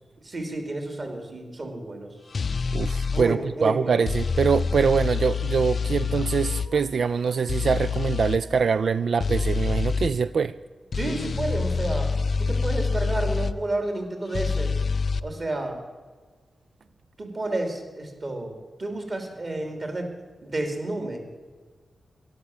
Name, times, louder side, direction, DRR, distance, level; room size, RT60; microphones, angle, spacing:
voice 1, 0.2-2.1 3.1-4.0 10.9-12.1 12.4-14.7 15.2-15.8 17.2-18.5 18.8-20.1 20.4-21.2, right 2 dB, 40° right, 4 dB, 3.0 m, -30 dB
sound 1, 2.3-3.3 4.1-6.7 7.5-8.4 9.2-10.1 10.9-13.5 14.3-15.2, left 5 dB, 55° left, 0.5 m, -26 dB
voice 2, 2.7-10.5, right 6 dB, 70° right, 14 dB, 0.3 m, -24 dB
sound 2, 6.1-9.8 11.2-14.8, equal, 90° right, 2.9 m, -49 dB
13.0 x 12.0 x 7.2 m, 1.4 s
wide cardioid pair, 105°, 0 cm